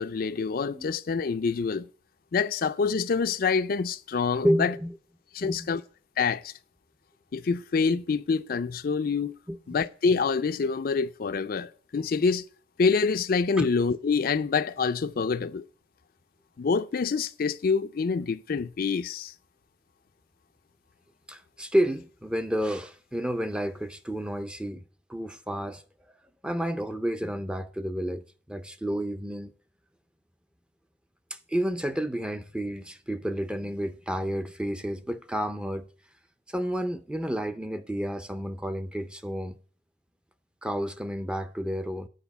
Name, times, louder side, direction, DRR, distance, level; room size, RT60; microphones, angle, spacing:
voice 1, 0.0-1.9 2.3-4.7 5.3-5.8 6.2-6.5 7.3-9.3 9.7-12.4 12.8-15.6 16.6-19.3, left 5 dB, 50° left, 0.4 m, -26 dB
voice 2, 4.4-5.0 5.4-5.8 9.5-9.6 13.6-13.7 21.3-24.8 25.1-25.8 26.4-29.5 31.3-35.9 36.5-39.6 40.6-42.1, equal, 5° right, 0.5 m, -30 dB
9.1 x 4.8 x 7.0 m
head